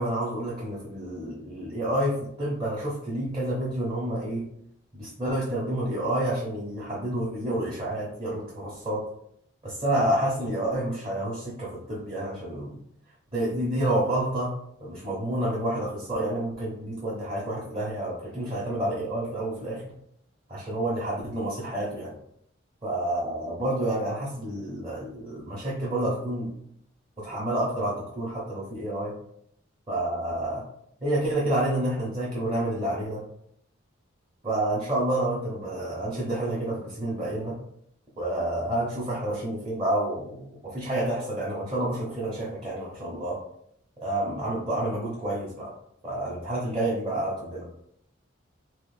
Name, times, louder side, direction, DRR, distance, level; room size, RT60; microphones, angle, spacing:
voice 1, 0.0-4.5 4.9-9.0 9.6-12.8 13.3-14.5 14.8-19.9 20.5-22.1 22.8-26.5 27.2-29.1 29.9-30.6 31.0-33.2 34.4-37.6 38.2-43.4 44.0-45.7 46.0-47.7, right 1 dB, 30° right, -7 dB, 0.8 m, -29 dB
3.0 x 2.0 x 3.2 m, 0.70 s
head